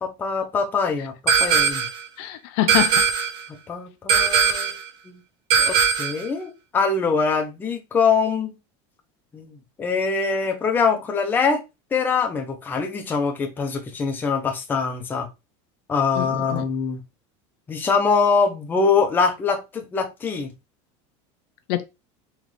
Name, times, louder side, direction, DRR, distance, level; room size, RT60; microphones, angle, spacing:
voice 1, 0.0-1.9 3.7-4.8 5.0-5.2 5.6-8.5 9.3-11.6 11.9-15.3 15.9-17.0 17.7-20.5, left 5 dB, 15° left, 0.6 m, -23 dB
sound 1, 1.3-2.0 2.7-3.4 4.1-4.8 5.5-6.2, right 7 dB, 55° right, 0.7 m, -19 dB
voice 2, 2.2-3.0 5.5-5.7 16.2-16.6 21.7-21.9, left 14 dB, 60° left, 0.4 m, -26 dB
3.8 x 3.1 x 3.1 m
cardioid pair, 170°, 15 cm